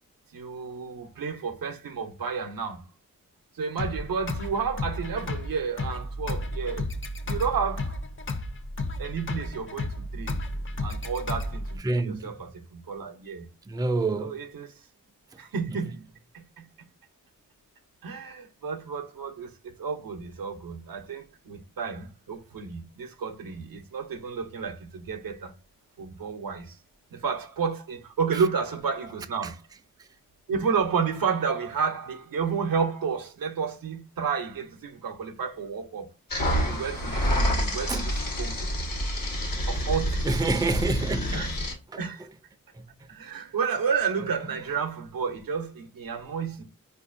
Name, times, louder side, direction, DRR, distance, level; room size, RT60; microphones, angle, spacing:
voice 1, 0.3-2.8 3.5-6.9 7.3-8.0 9.0-10.4 10.8-13.5 14.1-14.8 15.4-15.9 16.3-16.7 18.0-25.5 26.0-26.8 27.1-29.6 30.5-36.1 36.7-38.7 39.7-40.2 41.3-41.6 42.0-42.3 43.1-46.6, right 6 dB, 90° right, 0.6 m, -31 dB
sound 1, 3.8-11.8, left 2 dB, 40° left, 0.6 m, -33 dB
voice 2, 11.8-12.3 13.7-14.3 37.9-38.1 40.2-41.5, right 3 dB, 10° right, 0.3 m, -27 dB
sound 2, 36.3-41.7, equal, 85° left, 1.1 m, -27 dB
4.4 x 2.5 x 2.4 m
wide cardioid pair, 55°, 33 cm